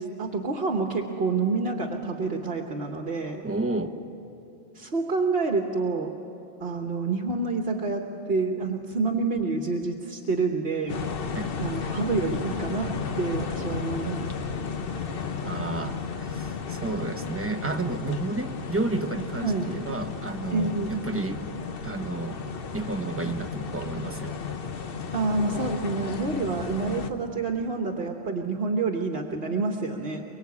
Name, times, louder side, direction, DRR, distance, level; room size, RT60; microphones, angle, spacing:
voice 1, 0.0-3.4 4.7-6.1 6.6-11.0 11.6-12.9 13.2-14.3 19.4-19.7 20.5-21.0 25.1-30.2, right 3 dB, 65° right, 2 dB, 1.5 m, -28 dB
voice 2, 3.4-4.0 11.3-11.5 15.4-21.4 21.8-22.5 22.7-24.3, right 2 dB, 15° right, 5 dB, 1.0 m, -31 dB
sound 1, 10.9-27.1, left 5 dB, 60° left, 1.1 m, -34 dB
23.5 x 23.5 x 8.3 m, 2.9 s
omnidirectional pair, 1.1 m